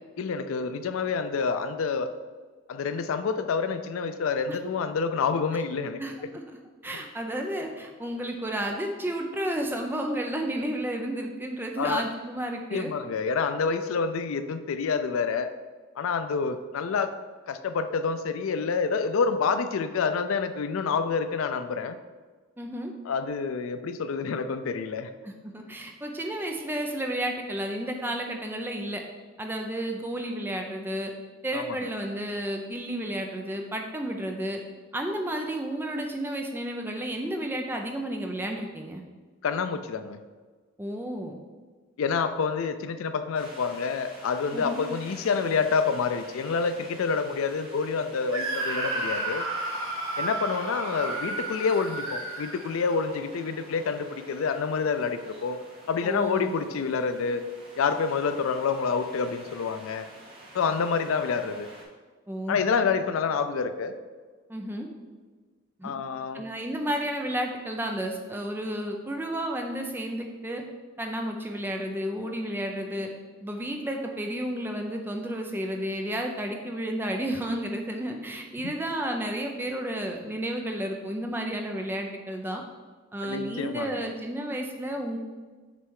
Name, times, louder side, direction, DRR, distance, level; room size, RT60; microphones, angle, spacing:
voice 1, 0.2-2.1 2.7-6.0 11.8-12.0 12.7-15.5 16.0-17.1 17.5-22.0 23.1-25.1 31.5-31.6 39.4-40.2 42.0-49.4 50.2-55.6 55.9-57.4 57.8-60.1 60.5-61.7 62.5-64.0 65.8-66.4 78.6-78.7 83.2-84.1, left 5 dB, 75° left, 10 dB, 0.4 m, -28 dB
voice 2, 6.0-6.4 6.8-12.9 22.6-22.9 25.2-29.0 29.4-31.1 31.4-34.6 34.9-39.0 40.8-41.4 44.5-44.8 56.0-56.5 62.3-62.6 64.5-64.9 65.8-65.9 66.3-70.6 71.0-73.1 73.4-82.6 83.1-85.2, right 1 dB, 10° right, 2 dB, 0.5 m, -32 dB
sound 1, 43.3-61.8, right 1 dB, 25° right, 1.4 m, -49 dB
Screaming, 48.3-53.2, right 2 dB, 80° right, 1.5 m, -32 dB
6.9 x 3.2 x 4.6 m, 1.4 s
head